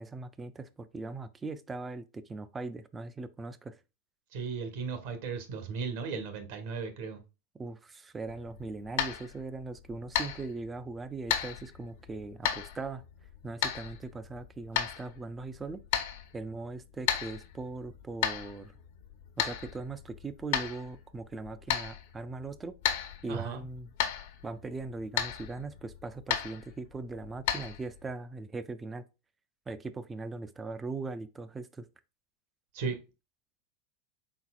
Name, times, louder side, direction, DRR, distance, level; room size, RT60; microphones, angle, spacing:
voice 1, 0.0-3.8 7.5-13.0 13.4-15.8 16.3-18.8 19.4-22.8 23.2-23.9 24.4-29.0 29.7-31.9, right 3 dB, 15° right, 0.4 m, -40 dB
voice 2, 4.3-7.2 23.3-23.6 32.7-33.0, right 5 dB, 65° right, 1.1 m, -36 dB
sound 1, 8.3-28.1, left 10 dB, 65° left, 0.8 m, -36 dB
4.1 x 4.0 x 2.3 m
supercardioid pair, 125°, 0 cm